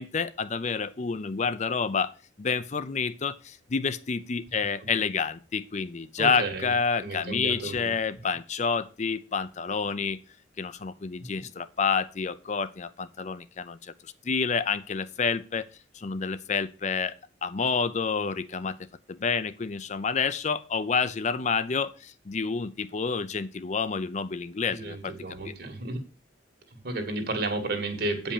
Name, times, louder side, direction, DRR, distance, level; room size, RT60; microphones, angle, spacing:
voice 1, 0.0-2.1 2.4-10.2 10.6-15.7 15.9-17.2 17.4-18.8 19.1-25.1 25.4-25.5, left 5 dB, 40° left, 14 dB, 0.5 m, -29 dB
voice 2, 6.2-6.7 7.0-7.9 11.2-11.3 24.7-26.0 26.7-28.3, right 2 dB, 55° right, 5 dB, 2.0 m, -32 dB
8.7 x 5.3 x 6.6 m, 0.36 s
head